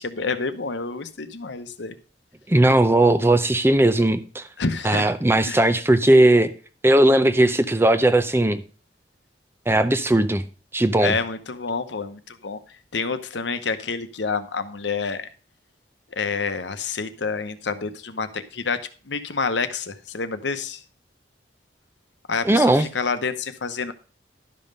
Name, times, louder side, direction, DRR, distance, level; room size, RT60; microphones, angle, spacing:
voice 1, 0.0-1.9 4.6-5.1 5.4-5.6 11.0-12.6 12.9-15.3 16.2-18.8 19.1-20.8 22.3-23.9, left 4 dB, 85° left, 0.9 m, -28 dB
voice 2, 2.5-4.4 4.8-6.5 6.8-8.6 9.7-10.4 10.7-11.2 22.4-22.9, right 1 dB, 15° right, 0.5 m, -18 dB
12.0 x 5.4 x 5.4 m
head